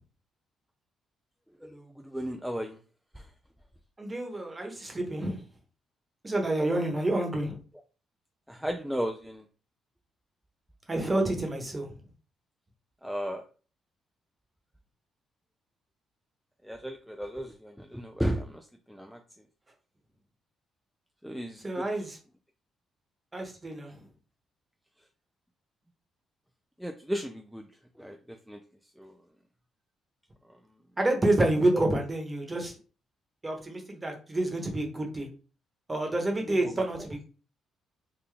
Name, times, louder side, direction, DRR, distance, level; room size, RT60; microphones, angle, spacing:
voice 1, 1.6-2.8 3.1-3.3 8.5-9.4 13.0-13.4 16.6-19.2 21.2-22.0 26.8-27.6 28.0-28.6 29.0-29.2 30.5-30.6 31.7-31.8 36.5-36.8, equal, ahead, 0.4 m, -35 dB
voice 2, 4.0-5.4 6.2-7.6 10.9-11.9 21.6-22.2 23.3-23.9 31.0-32.7 33.4-35.3 35.9-37.2, right 1 dB, 20° right, 1.1 m, -28 dB
3.8 x 2.2 x 3.3 m
cardioid pair, 90°, 0 cm